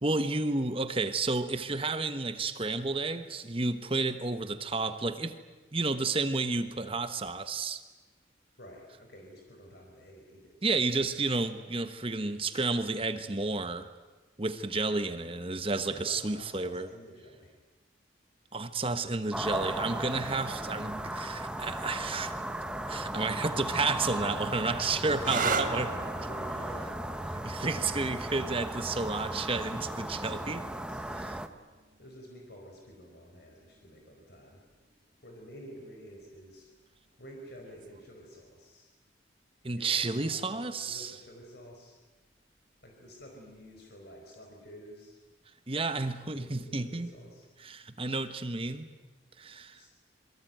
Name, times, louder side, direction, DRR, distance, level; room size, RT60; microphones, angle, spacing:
voice 1, 0.0-5.4 5.7-7.8 10.6-13.9 14.4-16.9 18.5-22.3 22.9-25.9 27.4-30.6 39.6-41.1 45.7-47.1 47.6-48.9 49.4-49.8, right 3 dB, 30° right, 10 dB, 1.2 m, -31 dB
voice 2, 8.6-10.6 15.8-17.6 24.7-27.0 27.6-28.5 29.8-31.5 32.0-34.6 35.2-36.7 37.2-38.9 39.8-42.0 42.8-45.2 46.3-47.5 49.7-49.9, equal, 55° left, 1 dB, 4.9 m, -50 dB
sound 1, 19.3-31.5, right 1 dB, 5° right, 1.1 m, -36 dB
sound 2, 25.2-32.6 33.6-34.1 37.6-38.0, right 5 dB, 45° right, 1.5 m, -39 dB
27.0 x 23.5 x 9.1 m, 1.2 s
head